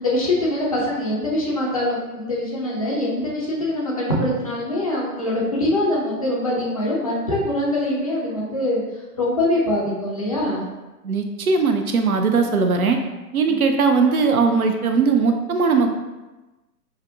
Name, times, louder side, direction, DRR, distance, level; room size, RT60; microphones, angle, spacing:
voice 1, 0.0-8.8 9.2-10.6 13.5-13.6, left 1 dB, 25° left, -5 dB, 0.5 m, -23 dB
voice 2, 11.0-13.0 13.3-15.9, right 4 dB, 65° right, 5 dB, 0.5 m, -19 dB
5.5 x 2.1 x 2.5 m, 1.1 s
figure-of-eight pair, 120°, 47 cm